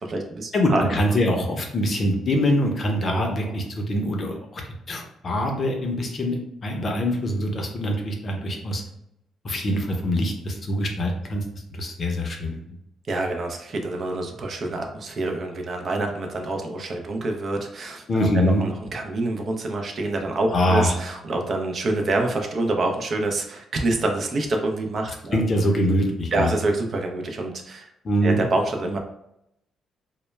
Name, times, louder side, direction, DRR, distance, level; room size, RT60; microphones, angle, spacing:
voice 1, 0.0-0.9 3.0-3.5 13.1-18.1 18.3-25.4 26.3-27.9 28.2-29.0, right 2 dB, 50° right, 3 dB, 0.4 m, -26 dB
voice 2, 0.5-4.6 4.9-8.8 9.4-11.4 11.7-12.5 18.1-18.6 20.5-20.9 25.3-26.5 28.0-28.4, equal, 45° left, 2 dB, 0.5 m, -24 dB
2.1 x 2.1 x 3.1 m, 0.80 s
cardioid pair, 90°, 0 cm